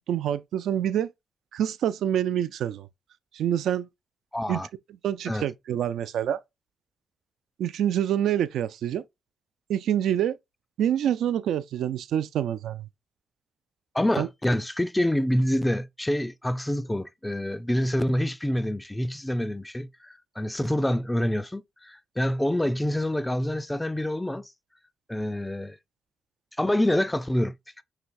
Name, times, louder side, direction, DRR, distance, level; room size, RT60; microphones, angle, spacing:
voice 1, 0.1-1.1 1.5-2.9 3.3-3.9 4.5-4.6 5.0-6.4 7.6-9.0 9.7-10.4 10.8-12.9 14.2-14.3, right 10 dB, 80° right, 0.3 m, -26 dB
voice 2, 4.3-4.7 5.3-5.5 13.9-24.5 25.1-25.8 26.6-27.5, left 1 dB, 5° left, 0.3 m, -26 dB
5.8 x 3.1 x 2.5 m
cardioid pair, 150°, 0 cm